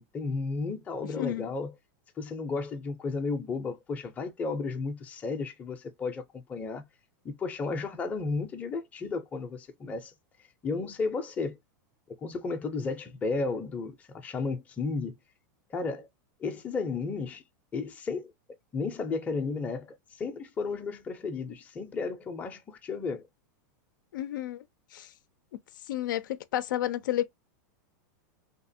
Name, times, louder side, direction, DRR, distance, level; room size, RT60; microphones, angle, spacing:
voice 1, 0.0-1.7 2.2-6.8 7.2-10.1 10.6-11.6 12.2-15.1 15.7-16.1 16.4-17.4 17.7-18.3 18.7-23.3, left 4 dB, 15° left, 0.5 m, -33 dB
voice 2, 1.2-1.5 24.1-24.6 24.9-25.1 25.9-26.2 26.5-27.2, left 13 dB, 85° left, 0.4 m, -30 dB
2.8 x 2.4 x 2.6 m
supercardioid pair, 150°, 10 cm